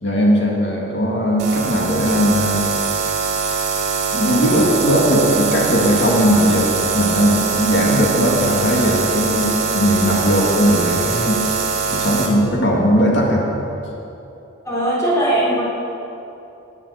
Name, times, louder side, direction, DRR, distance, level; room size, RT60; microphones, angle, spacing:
voice 1, 0.0-2.6 4.1-11.4 11.9-13.4, equal, 55° left, -2 dB, 2.3 m, -18 dB
sound 1, 1.4-12.3, right 5 dB, 55° right, 2.5 m, -22 dB
voice 2, 14.6-15.6, right 1 dB, 15° left, -8 dB, 3.8 m, -19 dB
19.5 x 7.1 x 6.7 m, 2.9 s
head